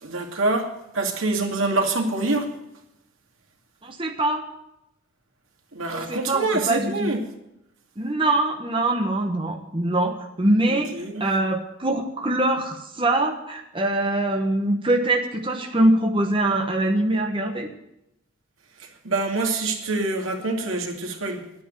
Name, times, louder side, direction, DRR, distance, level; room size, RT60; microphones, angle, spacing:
voice 1, 0.0-2.5 5.7-7.2 10.9-11.2 19.0-21.4, right 2 dB, 90° right, 2 dB, 2.3 m, -25 dB
voice 2, 3.8-4.5 5.9-7.1 8.0-17.7, right 1 dB, 25° right, 3 dB, 1.2 m, -23 dB
11.0 x 9.4 x 8.9 m, 0.85 s
head